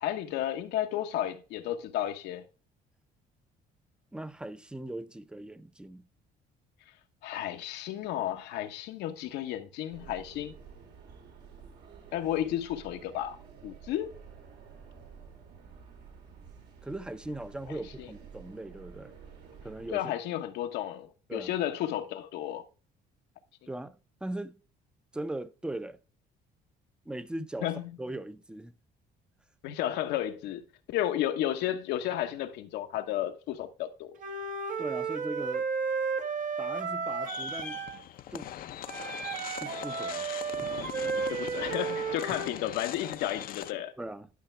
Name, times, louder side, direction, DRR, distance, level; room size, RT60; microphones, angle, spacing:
voice 1, 0.0-2.4 7.2-10.5 12.1-13.4 13.6-14.1 17.7-18.1 19.9-22.6 27.6-27.9 29.6-34.2 41.3-43.9, left 12 dB, 85° left, 1.0 m, -33 dB
voice 2, 4.1-6.1 16.8-19.1 19.6-20.1 21.3-21.5 23.7-24.6 25.1-26.0 27.1-27.7 28.0-28.7 34.8-35.7 36.6-37.8 38.3-38.5 39.4-41.1 44.0-44.3, right 1 dB, 5° right, 0.5 m, -39 dB
sound 1, 9.9-20.0, right 6 dB, 75° right, 2.4 m, -51 dB
Wind instrument woodwind instrument, 34.2-38.0 38.9-42.5, right 5 dB, 50° right, 0.9 m, -33 dB
sound 2, 37.3-43.7, left 11 dB, 60° left, 0.6 m, -41 dB
11.5 x 5.7 x 3.3 m
cardioid pair, 110°, 17 cm